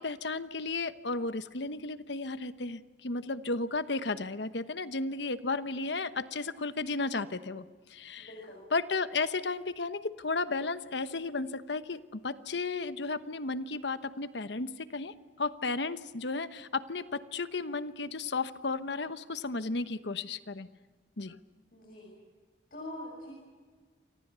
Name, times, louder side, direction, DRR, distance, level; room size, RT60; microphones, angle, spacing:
voice 1, 0.0-8.3 8.7-20.7 21.2-21.4, left 3 dB, 75° left, 12 dB, 1.1 m, -34 dB
voice 2, 8.2-8.6 21.7-22.1 22.7-23.3, left 1 dB, 50° left, -1 dB, 6.8 m, -44 dB
29.0 x 24.5 x 6.9 m, 1.4 s
head